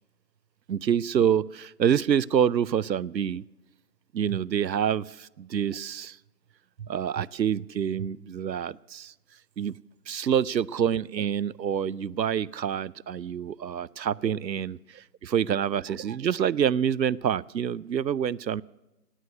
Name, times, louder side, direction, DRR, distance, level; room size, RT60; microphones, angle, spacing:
voice 1, 0.7-3.4 4.1-6.2 6.8-9.1 9.6-9.7 10.1-18.6, right 8 dB, 90° right, 0.6 m, -27 dB
18.0 x 8.0 x 9.9 m
figure-of-eight pair, 180°, 49 cm